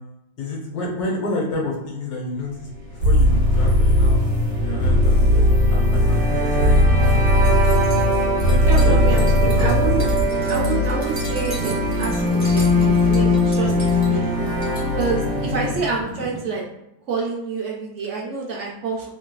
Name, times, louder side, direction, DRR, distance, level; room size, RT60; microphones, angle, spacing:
voice 1, 0.4-4.2 4.6-5.4 5.7-7.7 8.5-10.0 15.3-15.4, left 2 dB, 80° left, -1 dB, 1.4 m, -29 dB
sound 1, 3.0-10.3, left 1 dB, 65° left, 1.6 m, -18 dB
sound 2, 3.0-16.0, left 1 dB, 85° right, 1.3 m, -22 dB
sound 3, 7.0-16.4, equal, 15° right, 1.0 m, -35 dB
voice 2, 8.7-10.0 10.5-14.4 15.0-16.6 17.1-19.1, right 4 dB, 65° right, -2 dB, 0.7 m, -28 dB
3.2 x 3.1 x 2.2 m, 0.85 s
omnidirectional pair, 1.6 m